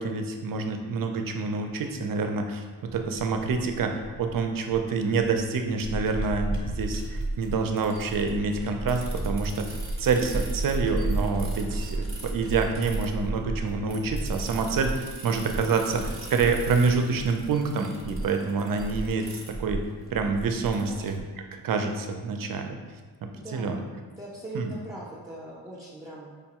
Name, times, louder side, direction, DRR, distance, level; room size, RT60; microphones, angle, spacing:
voice 1, 0.0-9.7 10.0-19.8 20.1-21.2 21.5-22.8 23.2-23.8 24.5-24.7, right 4 dB, 50° right, 5 dB, 0.5 m, -27 dB
sound 1, 2.9-21.2, right 2 dB, 30° right, 0.9 m, -34 dB
voice 2, 20.8-21.1 23.3-23.9 24.2-26.3, right 1 dB, 5° right, -7 dB, 0.6 m, -41 dB
5.0 x 2.2 x 2.9 m, 1.4 s
cardioid pair, 75°, 44 cm